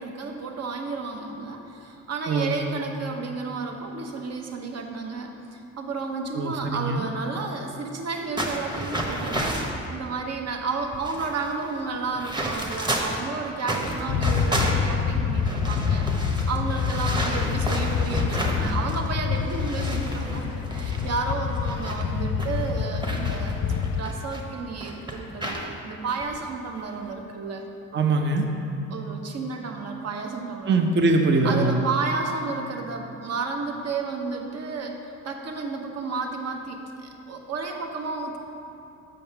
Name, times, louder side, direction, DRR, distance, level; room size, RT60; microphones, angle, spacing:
voice 1, 0.0-23.6 23.9-27.6 28.9-30.8 31.4-38.4, right 4 dB, 55° right, 2 dB, 1.0 m, -32 dB
voice 2, 2.3-2.6 6.3-7.0 27.9-28.5 30.7-31.8, right 3 dB, 40° right, 3 dB, 0.7 m, -22 dB
sound 1, 8.4-9.8 10.5-10.6 10.8-13.2 13.6-19.1 19.4-24.4 24.8-25.7 26.1-26.2 26.8-27.1, right 1 dB, 15° right, 1.0 m, -31 dB
sound 2, 14.1-24.0, left 7 dB, 50° left, 0.4 m, -27 dB
6.6 x 5.2 x 5.9 m, 2.7 s
cardioid pair, 90°, 30 cm